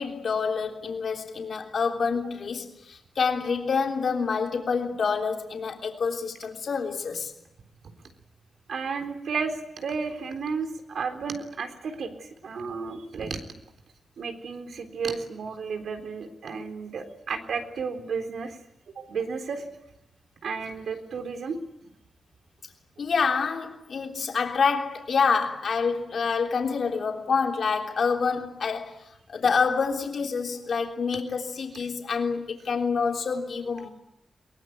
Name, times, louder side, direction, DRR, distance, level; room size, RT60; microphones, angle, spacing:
voice 1, 0.0-7.3 23.0-33.9, left 5 dB, 55° left, 3.4 m, -27 dB
voice 2, 8.7-13.4 14.2-18.6 19.0-19.7 20.4-21.6, right 5 dB, 75° right, 3.8 m, -32 dB
23.0 x 23.0 x 9.4 m
wide cardioid pair, 170°, 0 cm